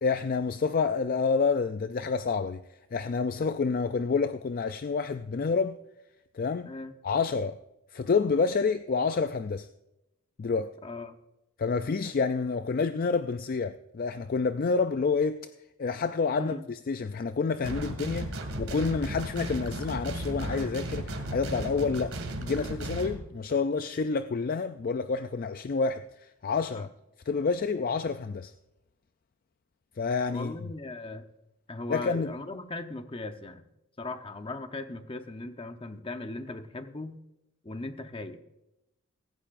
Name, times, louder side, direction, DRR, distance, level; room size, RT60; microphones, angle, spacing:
voice 1, 0.0-2.6 2.9-5.8 6.3-6.7 7.0-7.6 7.9-9.7 10.4-10.8 11.6-15.5 15.8-22.1 22.4-26.9 27.3-28.5 30.0-30.5 31.9-32.3, left 4 dB, 40° left, 0.3 m, -28 dB
voice 2, 10.8-11.2 16.4-16.7 26.7-26.9 30.3-31.3 31.7-33.7 34.0-37.2 37.6-38.4, left 2 dB, 25° left, 0.8 m, -38 dB
sound 1, 17.6-23.2, right 1 dB, 70° right, 2.2 m, -35 dB
16.0 x 16.0 x 2.5 m
head